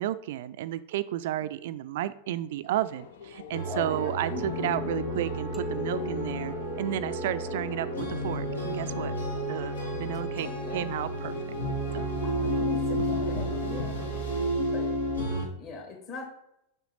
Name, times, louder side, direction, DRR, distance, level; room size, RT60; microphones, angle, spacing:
voice 1, 0.0-9.1 9.5-10.5 10.7-11.5 11.9-12.1, right 12 dB, 55° right, 15 dB, 0.4 m, -32 dB
sound 1, 2.4-14.5, left 6 dB, 60° left, 0.6 m, -44 dB
Sadness in roads to nowhere, 3.5-15.4, equal, 75° left, 2.0 m, -31 dB
voice 2, 3.7-4.7 9.9-10.9 12.2-14.0 14.7-14.9 15.6-16.3, left 5 dB, 40° left, 1 dB, 2.3 m, -41 dB
sound 2, 5.5-7.9, left 2 dB, ahead, 0.8 m, -42 dB
7.2 x 5.7 x 4.0 m, 0.78 s
figure-of-eight pair, 90°, 0 cm